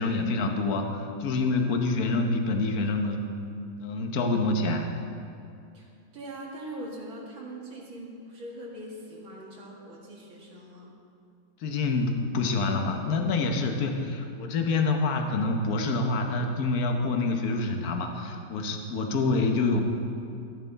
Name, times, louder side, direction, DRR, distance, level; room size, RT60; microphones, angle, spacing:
voice 1, 0.0-3.3 3.8-4.9 11.6-19.8, left 3 dB, 55° left, 4 dB, 1.2 m, -27 dB
voice 2, 5.7-10.9, right 1 dB, 80° right, -4 dB, 2.7 m, -42 dB
13.0 x 9.0 x 4.0 m, 2.5 s
omnidirectional pair, 2.1 m